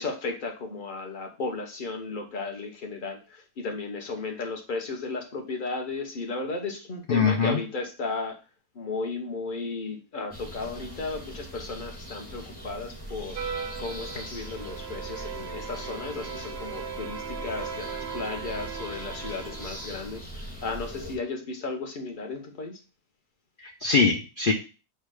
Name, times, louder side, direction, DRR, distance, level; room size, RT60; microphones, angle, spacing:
voice 1, 0.0-8.3 8.7-13.4 13.8-22.8, left 3 dB, 40° left, 3 dB, 0.9 m, -34 dB
voice 2, 7.1-7.6 23.6-24.5, left 5 dB, 80° left, 2 dB, 0.4 m, -23 dB
sound 1, 10.3-21.2, right 1 dB, 5° left, 1.1 m, -41 dB
sound 2, 13.3-20.3, right 6 dB, 65° right, 0.6 m, -38 dB
4.5 x 2.4 x 4.7 m, 0.33 s
omnidirectional pair, 1.6 m